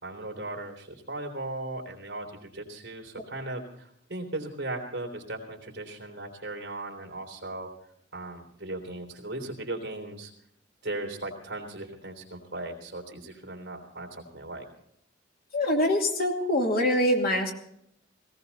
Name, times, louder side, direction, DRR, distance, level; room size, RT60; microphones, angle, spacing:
voice 1, 0.0-7.7 8.1-10.3 10.8-14.6, right 2 dB, 60° right, 3 dB, 3.3 m, -37 dB
voice 2, 15.5-17.5, left 1 dB, 50° left, 2 dB, 2.6 m, -24 dB
18.5 x 17.5 x 4.1 m, 0.72 s
head